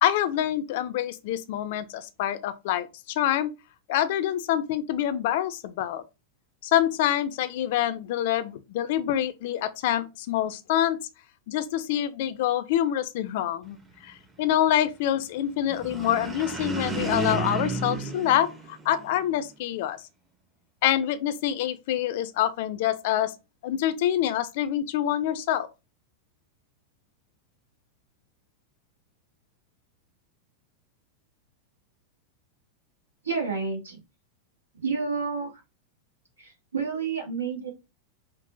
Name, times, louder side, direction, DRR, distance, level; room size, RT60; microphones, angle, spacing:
voice 1, 0.0-3.5 3.9-6.0 6.6-11.0 11.5-20.0 20.8-23.3 23.6-25.7, left 11 dB, 50° left, 0.5 m, -26 dB
sound 1, 15.7-19.3, right 3 dB, 15° right, 0.9 m, -32 dB
voice 2, 33.2-34.0 34.8-35.6 36.4-37.7, right 5 dB, 75° right, 1.6 m, -30 dB
5.2 x 2.6 x 2.6 m
figure-of-eight pair, 90°, 0 cm